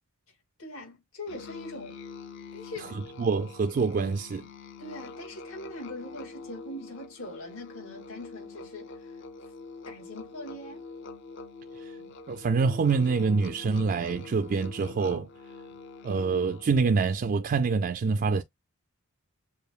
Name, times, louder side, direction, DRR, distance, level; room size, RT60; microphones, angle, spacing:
voice 1, 0.6-2.0 2.5-3.0 4.8-9.2 9.9-10.8, left 1 dB, 75° left, 2.0 m, -42 dB
Musical instrument, 1.3-16.8, left 4 dB, 55° left, 0.7 m, -45 dB
voice 2, 3.2-4.5 11.8-12.0 12.3-15.3 16.0-18.4, right 4 dB, 40° right, 0.3 m, -26 dB
6.8 x 2.6 x 2.3 m
head